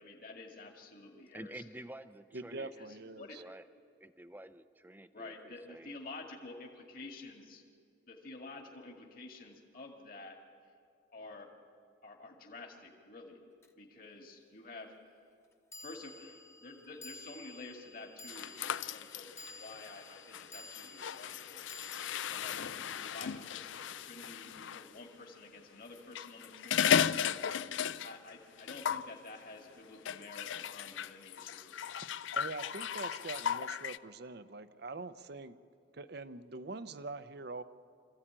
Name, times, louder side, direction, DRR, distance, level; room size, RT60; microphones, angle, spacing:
voice 1, 0.0-1.6 2.8-3.4 5.1-7.6 8.1-10.4 11.1-11.5 12.0-13.4 13.8-14.9 15.8-21.6 22.3-27.3 28.0-31.7, left 3 dB, 45° left, 2 dB, 2.0 m, -50 dB
voice 2, 1.3-2.7 3.3-3.6 4.0-5.9, right 1 dB, 10° right, 11 dB, 0.6 m, -49 dB
voice 3, 2.3-3.4 32.3-35.6 35.9-37.6, right 3 dB, 55° right, 12 dB, 0.7 m, -44 dB
sound 1, 13.6-13.7 15.7-24.1, left 2 dB, 15° left, 1.0 m, -53 dB
sound 2, 18.3-24.9 26.0-28.3 28.6-29.1 30.1-34.0, left 8 dB, 75° left, 0.4 m, -36 dB
25.5 x 14.5 x 8.8 m, 2.3 s
head